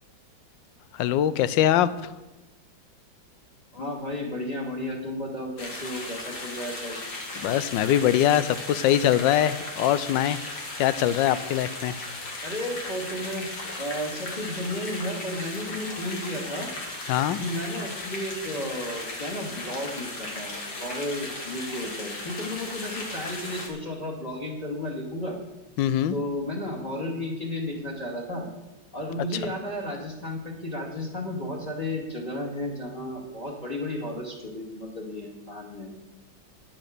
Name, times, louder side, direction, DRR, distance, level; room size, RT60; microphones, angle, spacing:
voice 1, 0.9-2.1 7.4-10.4 10.8-12.0 17.1-17.4 25.8-26.2, left 11 dB, 75° left, 15 dB, 1.3 m, -23 dB
voice 2, 3.7-7.0 11.1-11.2 12.4-13.5 13.8-16.7 17.4-20.5 20.8-25.4 26.1-28.5 28.9-35.9, left 1 dB, 20° left, -1 dB, 2.5 m, -33 dB
sound 1, 5.6-23.7, left 2 dB, 55° left, 2.5 m, -36 dB
10.5 x 8.8 x 6.7 m, 1.1 s
omnidirectional pair, 2.1 m